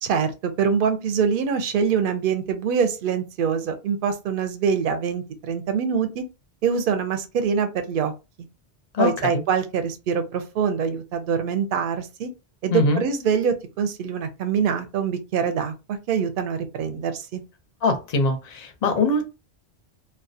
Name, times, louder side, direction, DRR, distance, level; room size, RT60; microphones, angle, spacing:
voice 1, 0.0-6.2 6.6-8.1 9.0-12.3 12.6-17.4, right 6 dB, 65° right, 0.6 m, -24 dB
voice 2, 8.9-9.4 12.7-13.0 17.8-19.3, left 3 dB, 50° left, 0.6 m, -22 dB
2.3 x 2.1 x 2.6 m
omnidirectional pair, 1.1 m